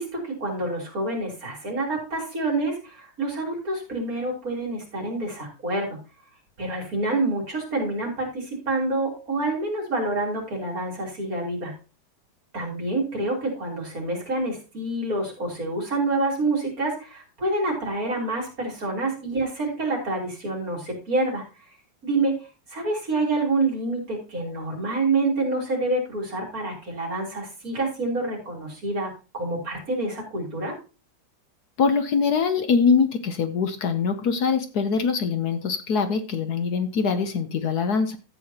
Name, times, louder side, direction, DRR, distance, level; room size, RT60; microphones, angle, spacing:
voice 1, 0.0-6.0 6.6-11.7 12.5-21.4 22.0-22.3 22.7-30.7, right 2 dB, 50° right, -1 dB, 4.1 m, -27 dB
voice 2, 31.8-38.2, left 5 dB, 65° left, 9 dB, 1.3 m, -23 dB
13.5 x 8.3 x 2.9 m, 0.32 s
omnidirectional pair, 2.0 m